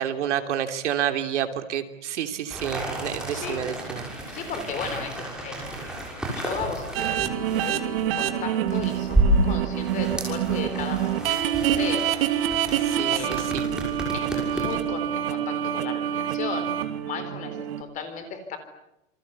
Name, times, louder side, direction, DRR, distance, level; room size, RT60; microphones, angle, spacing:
voice 1, 0.0-4.0 12.8-13.7, right 10 dB, 65° right, 8 dB, 3.2 m, -29 dB
sound 1, 2.5-14.9, right 1 dB, ahead, 6.3 m, -30 dB
voice 2, 3.3-3.7 4.3-12.1 13.0-13.5 14.1-16.7 17.0-18.6, left 6 dB, 20° left, 9 dB, 4.0 m, -35 dB
sound 2, 6.9-17.8, right 11 dB, 45° right, 2.7 m, -27 dB
28.0 x 24.5 x 8.4 m, 0.85 s
supercardioid pair, 170°, 38 cm